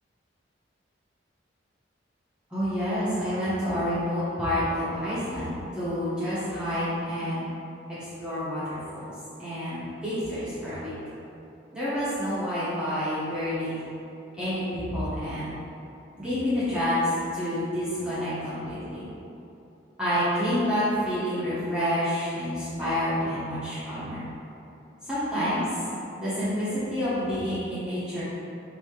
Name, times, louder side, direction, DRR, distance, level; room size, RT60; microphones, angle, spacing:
voice 1, 2.5-7.4 8.0-9.1 9.4-10.9 11.7-13.8 14.4-15.5 16.2-19.0 20.0-24.2 25.0-25.7 26.2-28.2, equal, 5° right, -14 dB, 1.0 m, -28 dB
5.3 x 2.7 x 3.1 m, 2.8 s
head